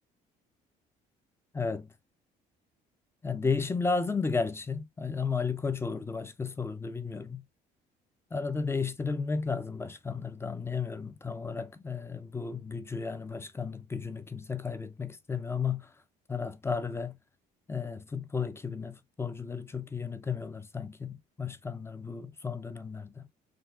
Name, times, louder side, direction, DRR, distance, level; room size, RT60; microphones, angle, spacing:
voice 1, 1.5-1.9 3.2-7.4 8.3-15.9 16.3-17.2 17.7-23.2, left 5 dB, 15° left, 0.4 m, -33 dB
3.6 x 2.3 x 2.4 m
cardioid pair, 110°, 17 cm